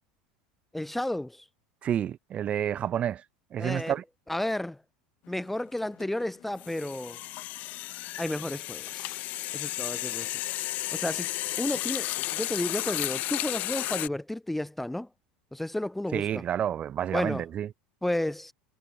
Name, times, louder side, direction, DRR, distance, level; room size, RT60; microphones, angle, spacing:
voice 1, 0.7-1.4 3.6-3.9 4.3-4.8 5.3-7.2 8.2-9.2 9.5-10.4 10.9-11.3 11.6-15.1 15.5-16.4 17.1-17.4 18.0-18.5, left 1 dB, 5° left, 0.5 m, -32 dB
voice 2, 1.8-3.2 3.5-4.0 16.1-17.7, right 10 dB, 40° right, 0.7 m, -29 dB
sound 1, 5.3-5.5 5.8-14.1, left 17 dB, 50° left, 1.0 m, -33 dB
hypercardioid pair, 75°, 3 cm